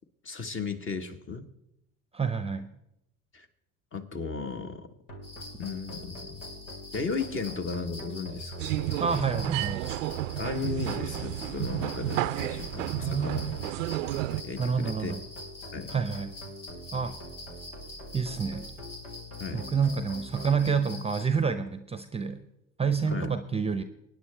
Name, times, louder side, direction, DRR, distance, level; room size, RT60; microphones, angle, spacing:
voice 1, 0.2-1.5 3.3-3.5 3.9-4.9 5.6-6.4 6.9-8.5 10.4-13.5 14.4-15.1 15.7-15.9 19.4-19.6 23.1-23.3, left 4 dB, 30° left, 7 dB, 1.5 m, -35 dB
voice 2, 2.1-2.7 9.0-9.9 12.8-13.6 14.6-15.2 15.9-16.3 16.9-17.1 18.1-18.7 19.5-22.4 22.8-23.8, right 5 dB, 15° right, 10 dB, 0.8 m, -28 dB
sound 1, 5.1-20.7, equal, 80° left, 2.4 m, -44 dB
sound 2, 5.2-21.3, left 2 dB, 55° left, 3.8 m, -46 dB
sound 3, 8.6-14.4, right 16 dB, 75° right, 0.6 m, -32 dB
23.5 x 9.6 x 3.4 m, 0.85 s
hypercardioid pair, 70°, 38 cm